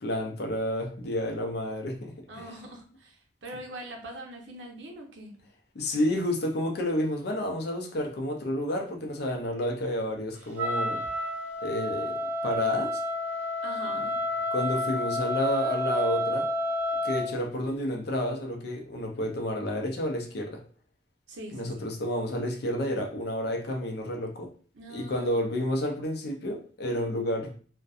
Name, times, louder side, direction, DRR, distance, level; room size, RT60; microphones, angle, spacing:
voice 1, 0.0-2.5 5.8-11.0 11.6-13.0 14.5-16.5 17.0-20.6 21.5-24.5 24.9-27.6, left 1 dB, 60° left, 0.5 m, -30 dB
voice 2, 2.3-5.3 13.6-14.2 21.3-21.9 24.7-25.5, right 1 dB, 80° right, 0.7 m, -42 dB
Wind instrument woodwind instrument, 10.6-17.4, left 1 dB, 10° right, 0.7 m, -30 dB
2.6 x 2.2 x 2.3 m
head